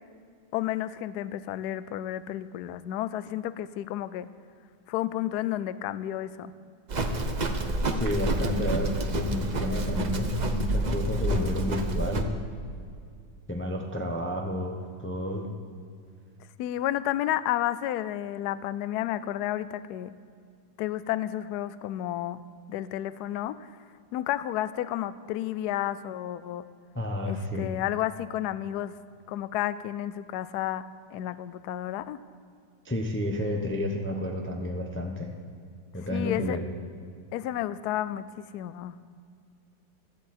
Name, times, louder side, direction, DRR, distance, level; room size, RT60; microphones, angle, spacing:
voice 1, 0.5-4.3 4.9-6.5 16.6-20.1 20.8-22.4 22.7-23.6 24.1-26.6 27.3-29.0 29.3-32.2 36.1-36.6 37.3-38.9, left 13 dB, 70° left, 15 dB, 1.0 m, -31 dB
Livestock farm animals working animals, 6.9-12.2, right 1 dB, 50° right, 0.5 m, -28 dB
voice 2, 8.0-12.3 13.5-15.5 26.9-27.7 32.8-35.3 35.9-36.7, left 1 dB, 10° left, 2 dB, 0.7 m, -31 dB
16.5 x 13.5 x 4.4 m, 2.3 s
omnidirectional pair, 2.0 m